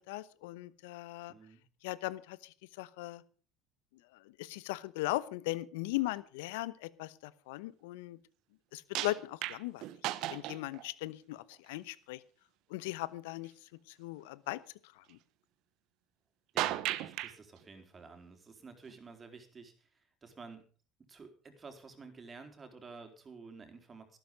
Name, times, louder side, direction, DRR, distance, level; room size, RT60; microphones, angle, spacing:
voice 1, 0.0-1.3 1.8-3.2 4.4-8.2 8.7-9.8 10.3-12.2 12.7-13.5 13.9-14.6 15.0-15.2, left 18 dB, 75° left, 19 dB, 0.8 m, -38 dB
voice 2, 1.2-1.6 16.5-20.7 21.0-24.2, right 4 dB, 30° right, 6 dB, 4.2 m, -52 dB
sound 1, 9.0-10.9 11.5-11.6 16.6-17.4 18.9-19.0, right 15 dB, 60° right, 1.0 m, -35 dB
14.0 x 12.5 x 5.3 m, 0.40 s
hypercardioid pair, 70°, 0 cm